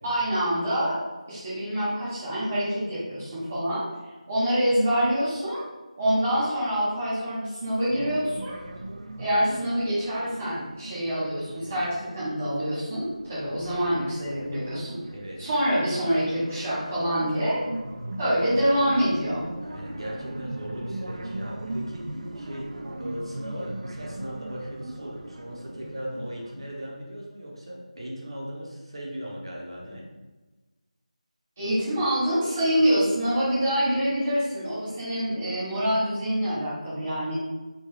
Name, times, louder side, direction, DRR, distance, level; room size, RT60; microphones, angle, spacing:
voice 1, 0.0-1.0 1.3-3.8 4.3-5.6 6.0-8.5 9.2-15.0 15.4-17.6 18.2-19.4 31.6-37.3, equal, 15° right, -12 dB, 0.6 m, -26 dB
sound 1, 7.9-12.1 12.5-26.9, right 1 dB, 65° right, 0.4 m, -39 dB
voice 2, 15.1-15.5 19.6-30.1, equal, 45° right, -3 dB, 0.7 m, -38 dB
3.6 x 2.2 x 3.1 m, 1.2 s
figure-of-eight pair, 180°, 4 cm